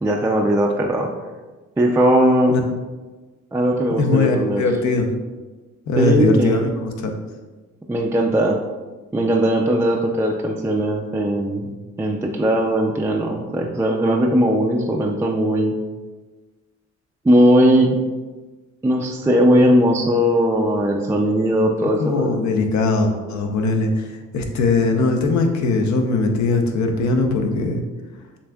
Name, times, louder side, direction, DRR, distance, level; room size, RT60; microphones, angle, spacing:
voice 1, 0.0-1.1 1.8-2.5 3.5-4.6 6.0-6.6 7.9-8.6 9.1-11.7 12.0-15.8 17.2-18.0 18.8-22.4, equal, 10° right, 0 dB, 0.3 m, -18 dB
voice 2, 4.0-5.1 5.9-7.1 21.8-27.8, left 3 dB, 70° left, 4 dB, 0.7 m, -20 dB
6.9 x 2.6 x 2.3 m, 1.3 s
cardioid pair, 90°, 30 cm